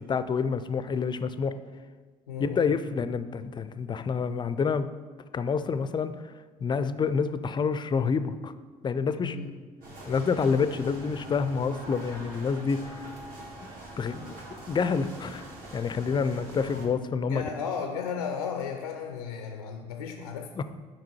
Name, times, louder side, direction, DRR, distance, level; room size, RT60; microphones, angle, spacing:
voice 1, 0.0-1.6 2.4-4.9 5.3-6.1 6.6-8.5 8.8-9.4 10.1-13.0 13.6-13.7 14.0-14.3 14.7-15.4 15.7-17.4 20.6-20.7, left 5 dB, 25° left, 12 dB, 0.4 m, -28 dB
voice 2, 2.3-2.7 9.2-9.5 17.2-20.5, left 6 dB, 85° left, 5 dB, 0.4 m, -34 dB
sound 1, 9.8-16.9, right 1 dB, 50° right, 1.6 m, -44 dB
5.9 x 5.0 x 4.5 m, 1.4 s
figure-of-eight pair, 55°, 19 cm